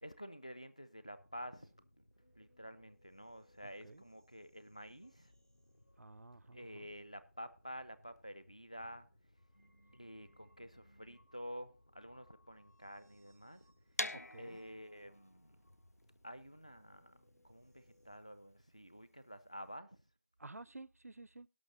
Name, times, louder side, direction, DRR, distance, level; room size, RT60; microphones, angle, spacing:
voice 1, 0.0-1.7 2.4-5.3 6.5-9.1 9.9-13.6 14.4-15.5 16.2-17.2 17.4-20.0, equal, 25° left, 0.5 m, -50 dB
sound 1, 1.2-18.2, left 1 dB, 80° left, 2.5 m, -68 dB
voice 2, 3.6-4.1 6.0-6.9 14.1-14.6 20.4-21.5, right 2 dB, 65° right, 0.5 m, -53 dB
sound 2, 14.0-19.8, left 2 dB, 65° left, 0.7 m, -45 dB
17.5 x 6.0 x 3.8 m
figure-of-eight pair, 180°, 9 cm